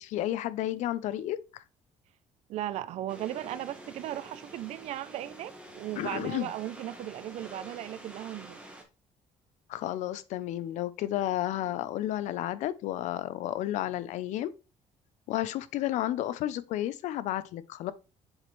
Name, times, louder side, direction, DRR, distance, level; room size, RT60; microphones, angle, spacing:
voice 1, 0.0-1.6 6.0-6.5 9.7-14.5 15.3-17.9, left 13 dB, 65° left, 0.5 m, -32 dB
voice 2, 2.5-8.7, right 13 dB, 55° right, 0.5 m, -37 dB
sound 1, 3.1-8.8, right 1 dB, 10° right, 1.4 m, -48 dB
7.2 x 5.1 x 3.1 m
cardioid pair, 160°, 13 cm